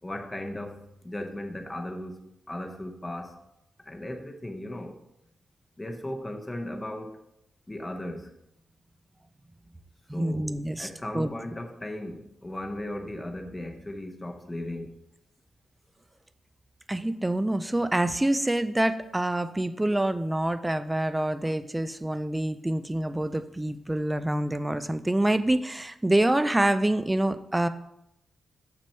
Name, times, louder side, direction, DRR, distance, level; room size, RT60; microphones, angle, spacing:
voice 1, 0.0-3.4 3.8-5.0 5.8-7.2 7.7-8.3 10.1-10.5 10.8-14.9, left 1 dB, 10° left, 4 dB, 0.8 m, -36 dB
voice 2, 10.1-10.9 11.1-11.3 16.9-27.7, right 1 dB, 10° right, 11 dB, 0.4 m, -26 dB
7.0 x 6.1 x 4.3 m, 0.81 s
wide cardioid pair, 165°, 0 cm